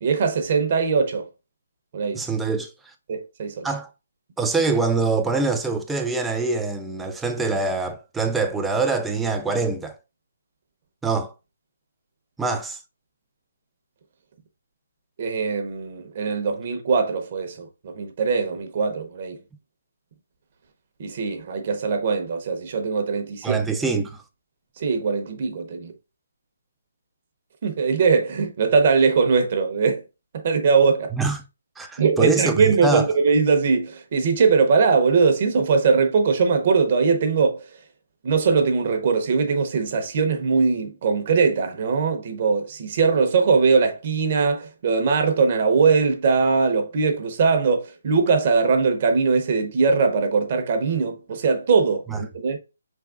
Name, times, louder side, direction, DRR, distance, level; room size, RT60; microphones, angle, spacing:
voice 1, 0.0-1.3 1.9-2.3 3.1-3.7 15.2-19.4 21.0-23.6 24.8-25.9 27.6-30.0 30.3-31.1 32.0-37.8 38.2-52.6, right 5 dB, 35° right, 0.7 m, -21 dB
voice 2, 2.1-2.7 3.6-3.9 4.4-10.0 11.0-11.3 12.4-12.8 23.4-24.2 31.1-31.4 31.8-33.1 52.1-52.2, right 4 dB, 5° right, 0.3 m, -24 dB
4.5 x 3.5 x 2.3 m
hypercardioid pair, 160°, 0 cm